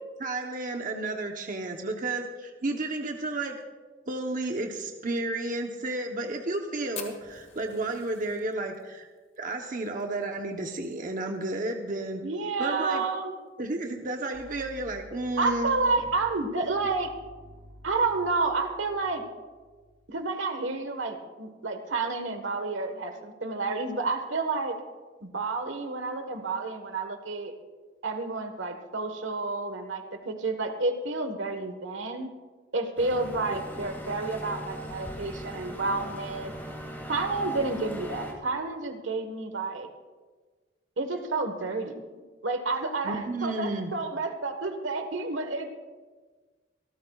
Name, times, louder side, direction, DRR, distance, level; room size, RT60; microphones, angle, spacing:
voice 1, 0.2-3.6 4.1-9.1 9.4-12.2 12.6-13.0 13.6-15.8 33.5-33.6 43.0-43.9, right 2 dB, 45° right, 3 dB, 0.9 m, -32 dB
Fire, 6.9-11.5 11.7-11.8 12.1-12.2 12.5-13.0 13.5-13.6 14.6-14.8, left 6 dB, 35° left, 1.5 m, -46 dB
voice 2, 12.2-13.3 15.4-17.1 17.8-19.2 20.1-24.8 25.2-27.6 28.0-32.3 32.7-36.5 37.1-39.9 41.0-45.7, right 3 dB, 80° right, 7 dB, 1.4 m, -30 dB
sound 1, 14.3-20.3, equal, 65° right, 2.4 m, -51 dB
sound 2, 33.0-38.3, equal, 10° left, 2.0 m, -40 dB
26.0 x 13.5 x 2.4 m, 1.4 s
head